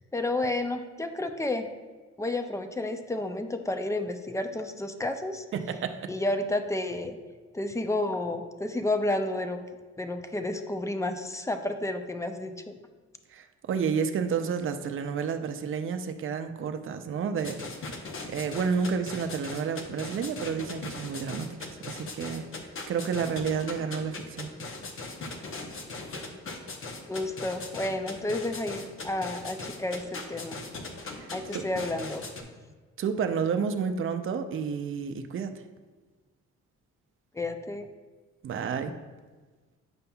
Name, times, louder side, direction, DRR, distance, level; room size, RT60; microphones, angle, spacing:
voice 1, 0.1-1.7 2.2-5.4 6.1-7.2 7.5-9.6 10.0-12.7 27.1-30.6 31.3-32.2 37.3-37.9, left 2 dB, 10° left, 7 dB, 0.5 m, -31 dB
voice 2, 5.5-6.1 13.3-17.6 17.9-18.0 18.3-22.4 22.9-24.5 31.1-31.6 33.0-35.5 38.4-38.9, right 6 dB, 45° right, 7 dB, 0.5 m, -30 dB
sound 1, 17.4-32.4, left 3 dB, 45° left, 0.9 m, -39 dB
8.7 x 5.3 x 2.3 m, 1.3 s
cardioid pair, 90°, 30 cm